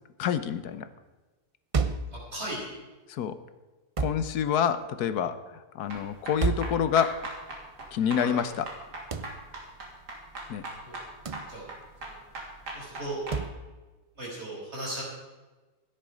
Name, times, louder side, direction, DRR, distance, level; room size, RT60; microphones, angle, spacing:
voice 1, 0.2-0.9 3.1-3.4 4.0-7.2 7.9-8.7 10.5-10.6, left 8 dB, 75° left, 12 dB, 1.3 m, -27 dB
sound 1, 1.7-2.2 4.0-4.3 6.4-6.8 9.1-9.4 11.2-11.5 13.3-13.6, right 5 dB, 60° right, 0.3 m, -29 dB
voice 2, 2.1-2.7 8.2-8.3 10.8-11.0 11.3-11.6 12.0-12.2 12.7-13.2 14.2-15.0, right 1 dB, 40° right, -5 dB, 6.0 m, -37 dB
sound 2, 5.9-13.4, right 2 dB, 90° right, 3.4 m, -40 dB
16.5 x 10.0 x 5.1 m, 1.2 s
omnidirectional pair, 1.7 m